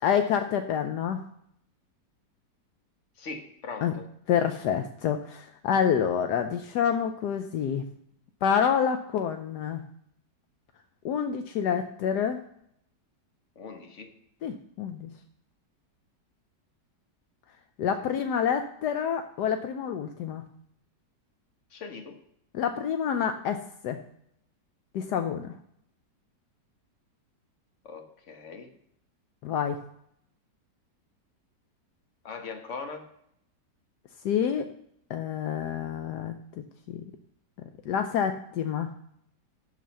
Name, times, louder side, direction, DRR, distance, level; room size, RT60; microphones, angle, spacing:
voice 1, 0.0-1.2 3.8-4.0 4.3-7.8 8.4-9.8 11.0-12.4 14.4-15.1 17.8-20.4 22.5-23.6 23.8-24.0 24.9-25.5 29.4-29.8 34.2-34.7 35.1-37.0 37.9-38.9, left 8 dB, 75° left, 7 dB, 1.2 m, -27 dB
voice 2, 3.2-4.0 13.6-14.1 21.7-22.2 27.8-28.7 32.2-33.0, left 4 dB, 45° left, 5 dB, 1.5 m, -40 dB
11.0 x 4.1 x 6.9 m, 0.72 s
omnidirectional pair, 1.9 m